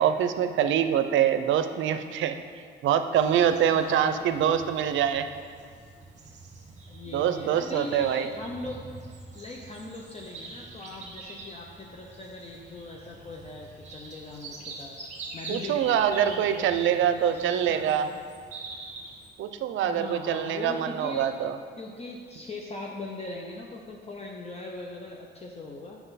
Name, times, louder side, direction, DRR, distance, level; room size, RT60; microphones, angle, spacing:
voice 1, 0.0-2.4 2.8-5.3 7.1-8.3 15.5-18.1 19.4-21.6, right 9 dB, 75° right, 10 dB, 0.5 m, -24 dB
sound 1, 3.1-19.3, right 3 dB, 35° right, 1.4 m, -45 dB
voice 2, 3.5-4.6 6.9-8.9 9.3-14.9 15.3-15.8 16.2-18.2 19.8-21.3 21.8-26.0, left 2 dB, 30° left, -1 dB, 0.7 m, -40 dB
7.8 x 5.8 x 4.1 m, 2.1 s
cardioid pair, 90°, 20 cm